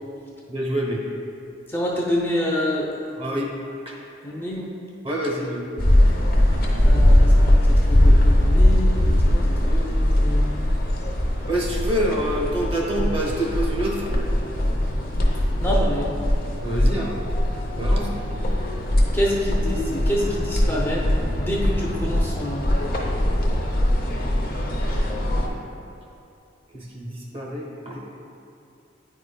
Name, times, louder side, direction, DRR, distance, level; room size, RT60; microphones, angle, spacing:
voice 1, 0.5-1.0 3.2-3.5 3.9-4.0 5.0-5.7 11.4-14.0 16.6-17.2 17.7-18.1 26.7-28.0, right 1 dB, 30° right, -2 dB, 0.8 m, -26 dB
voice 2, 1.7-2.9 4.2-4.7 6.8-10.6 15.6-16.2 19.1-21.1 21.3-22.7, equal, 10° left, -5 dB, 0.5 m, -27 dB
sound 1, 5.8-25.5, left 1 dB, 50° left, 0.8 m, -20 dB
9.2 x 5.0 x 2.2 m, 2.8 s
head